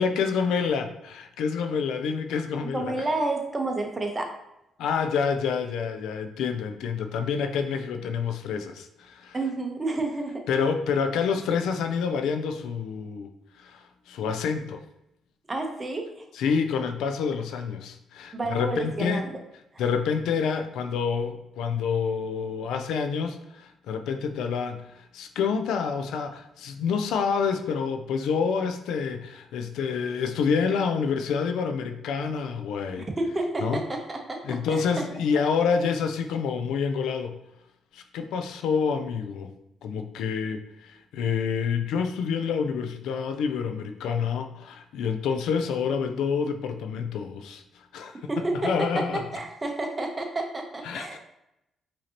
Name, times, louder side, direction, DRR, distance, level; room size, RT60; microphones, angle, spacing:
voice 1, 0.0-2.9 4.8-9.4 10.5-13.3 13.6-14.8 16.3-19.3 19.8-33.1 33.6-33.8 34.4-37.4 37.9-39.5 39.8-48.2 48.5-49.4 50.8-51.2, left 6 dB, 85° left, 7 dB, 0.4 m, -28 dB
voice 2, 2.6-4.3 9.3-10.5 15.5-16.2 18.3-19.4 33.0-35.0 48.3-51.2, right 2 dB, 25° right, 2 dB, 0.8 m, -30 dB
5.1 x 2.8 x 2.8 m, 0.84 s
cardioid pair, 90°, 0 cm